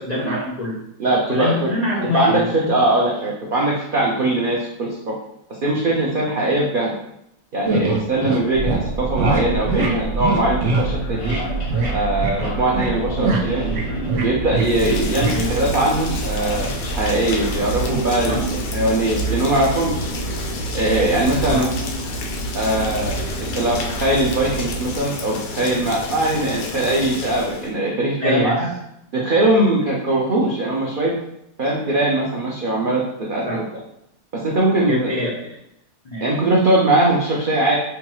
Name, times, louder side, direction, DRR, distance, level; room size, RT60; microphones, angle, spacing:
voice 1, 0.0-0.9 1.3-2.7 9.6-10.0 15.3-15.6 18.3-18.5 21.5-21.7 28.2-28.7 33.5-33.6 34.9-35.5 36.0-36.3, left 1 dB, 70° left, -5 dB, 0.3 m, -25 dB
voice 2, 1.0-1.7 2.1-5.1 5.6-7.0 7.5-11.4 11.9-13.7 14.2-20.1 20.7-21.7 22.5-23.1 23.5-28.7 29.1-31.1 31.6-33.0 33.3-33.6 34.3-35.3 36.2-37.8, right 1 dB, 80° right, -3 dB, 0.4 m, -21 dB
sound 1, 7.7-8.4 8.7-8.8 9.2-9.4 9.7-9.9 10.2-10.9 11.2-11.4 11.7-11.9 12.2-12.9 13.2-14.9 15.2-15.4, right 3 dB, 60° right, 0.8 m, -22 dB
sound 2, 8.5-24.9, right 3 dB, 25° left, 0.8 m, -28 dB
Rain, 14.5-27.7, left 4 dB, 90° left, 1.2 m, -30 dB
4.7 x 2.3 x 3.0 m, 0.80 s
omnidirectional pair, 1.7 m